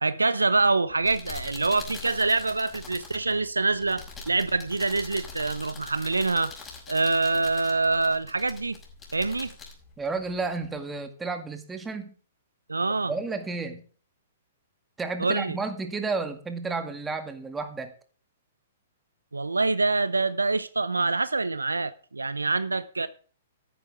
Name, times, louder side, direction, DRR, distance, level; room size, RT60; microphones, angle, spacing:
voice 1, 0.0-6.5 6.9-8.8 9.1-9.5 12.7-13.1 15.2-15.6 19.3-23.1, right 3 dB, 85° right, 0.8 m, -25 dB
sound 1, 0.9-10.7, left 4 dB, 20° left, 5.9 m, -44 dB
voice 2, 10.0-12.1 13.1-13.8 15.0-17.9, right 4 dB, 10° right, 2.0 m, -32 dB
13.5 x 11.5 x 3.6 m
figure-of-eight pair, 115°, 0 cm